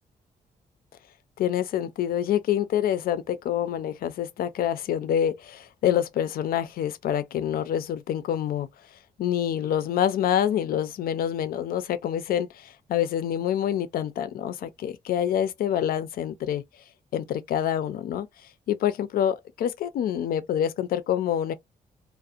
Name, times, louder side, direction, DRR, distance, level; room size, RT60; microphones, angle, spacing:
voice 1, 1.4-8.7 9.2-16.6 17.1-18.3 18.7-21.5, left 10 dB, 80° left, 0.4 m, -26 dB
2.4 x 2.1 x 2.5 m
wide cardioid pair, 160°, 15 cm